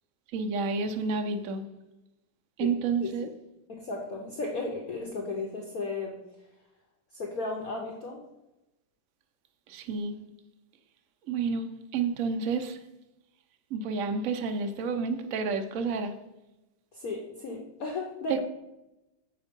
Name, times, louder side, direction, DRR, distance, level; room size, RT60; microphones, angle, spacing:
voice 1, 0.3-1.6 2.6-3.3 9.7-10.2 11.3-12.8 13.7-16.1 18.3-18.4, right 4 dB, 80° right, 7 dB, 0.7 m, -30 dB
voice 2, 3.7-6.2 7.1-8.2 16.9-18.4, left 3 dB, 55° left, 1 dB, 1.1 m, -35 dB
7.2 x 5.4 x 5.2 m, 0.95 s
omnidirectional pair, 2.3 m